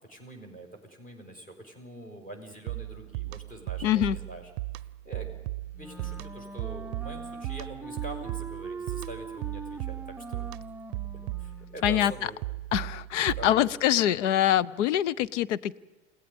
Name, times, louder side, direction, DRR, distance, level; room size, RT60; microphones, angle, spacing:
voice 1, 0.0-4.4 4.7-5.5 5.8-10.0 10.3-10.4 11.4-12.4 13.4-13.7, right 1 dB, 20° left, 4 dB, 5.6 m, -44 dB
sound 1, 2.7-13.8, right 19 dB, 55° right, 0.6 m, -37 dB
voice 2, 3.8-4.2 11.8-12.3 12.7-15.8, left 12 dB, 70° left, 19 dB, 0.9 m, -24 dB
Wind instrument woodwind instrument, 5.7-11.9, right 3 dB, 5° right, 0.7 m, -42 dB
29.5 x 17.5 x 5.3 m, 1.2 s
hypercardioid pair, 85°, 38 cm